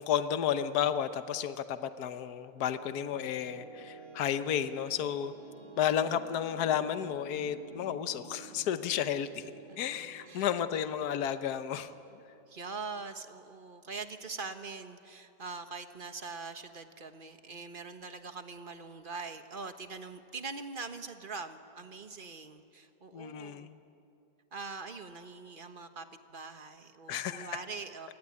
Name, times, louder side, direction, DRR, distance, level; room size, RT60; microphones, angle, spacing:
voice 1, 0.0-5.3 5.8-11.9 23.1-23.8 27.1-27.6, left 9 dB, 65° left, 11 dB, 1.4 m, -32 dB
sound 1, 2.3-13.1, right 3 dB, 15° left, 5.2 m, -52 dB
voice 2, 10.7-11.0 12.5-23.7 24.5-28.1, right 4 dB, 35° right, 8 dB, 1.3 m, -43 dB
28.0 x 20.5 x 9.7 m, 2.7 s
omnidirectional pair, 1.8 m